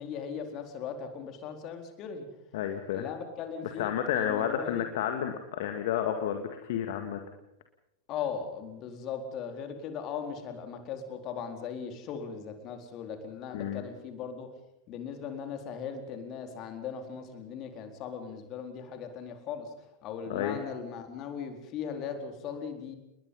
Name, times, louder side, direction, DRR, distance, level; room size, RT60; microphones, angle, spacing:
voice 1, 0.0-2.3 2.9-4.9 8.1-14.5 14.9-23.0, left 7 dB, 35° left, 5 dB, 4.3 m, -38 dB
voice 2, 2.5-3.0 3.8-7.2 13.5-13.8 20.3-20.6, left 9 dB, 55° left, 6 dB, 1.9 m, -31 dB
29.5 x 21.0 x 5.6 m, 0.86 s
figure-of-eight pair, 90°, 0 cm